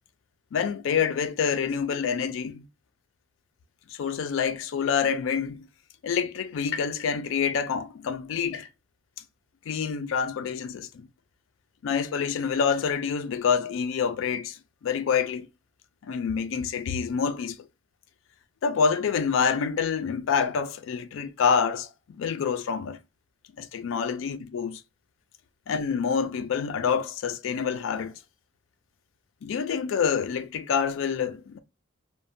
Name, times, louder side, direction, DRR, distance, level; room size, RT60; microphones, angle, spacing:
voice 1, 0.5-2.6 3.9-5.7 6.0-8.7 9.7-11.1 11.8-15.5 16.0-17.7 18.6-23.0 23.6-24.8 25.7-28.2 29.4-31.6, left 6 dB, 65° left, 0.3 m, -27 dB
2.6 x 2.1 x 2.5 m
head